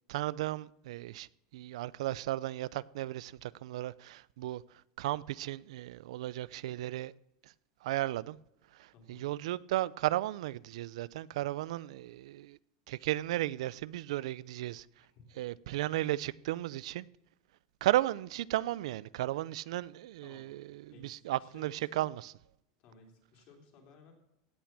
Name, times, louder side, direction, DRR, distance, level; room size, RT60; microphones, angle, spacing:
voice 1, 0.1-7.1 7.4-7.5 7.8-8.4 8.7-12.6 12.9-15.0 15.4-17.1 17.8-22.3, right 15 dB, 80° right, 0.4 m, -35 dB
voice 2, 8.9-9.3 15.2-15.3 20.2-20.5 20.9-22.1 22.8-24.1, left 4 dB, 40° left, 3.0 m, -58 dB
16.5 x 6.1 x 7.2 m
supercardioid pair, 175°, 3 cm